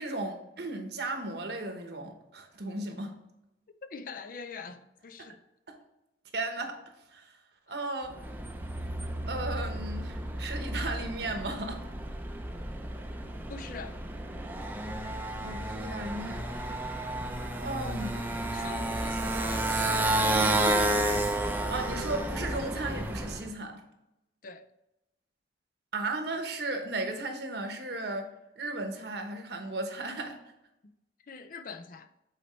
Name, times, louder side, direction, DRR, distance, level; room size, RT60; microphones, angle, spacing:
voice 1, 0.0-3.1 5.7-5.8 6.3-6.8 7.1-7.3 7.7-8.1 9.3-11.8 15.4-16.4 16.7-16.9 17.6-18.3 20.6-20.9 21.7-23.8 25.9-28.3 28.6-30.4, right 2 dB, 60° right, 1.1 m, -35 dB
voice 2, 3.8-5.4 13.5-14.0 18.5-19.7 24.4-24.7 30.8-30.9 31.3-32.1, left 5 dB, 50° left, 0.4 m, -44 dB
Motorcycle, 8.1-23.5, right 1 dB, 10° right, 0.5 m, -31 dB
7.9 x 4.3 x 3.2 m
head